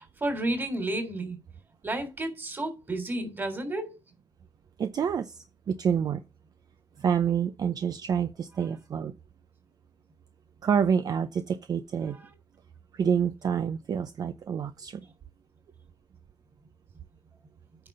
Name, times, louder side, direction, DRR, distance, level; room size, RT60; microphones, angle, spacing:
voice 1, 0.0-1.4 1.8-3.9, right 1 dB, 25° right, 3.4 m, -31 dB
voice 2, 4.8-6.2 7.0-9.1 10.6-12.2 12.9-15.0, right 7 dB, 55° right, 0.6 m, -28 dB
9.0 x 5.7 x 6.7 m
wide cardioid pair, 140°, 8 cm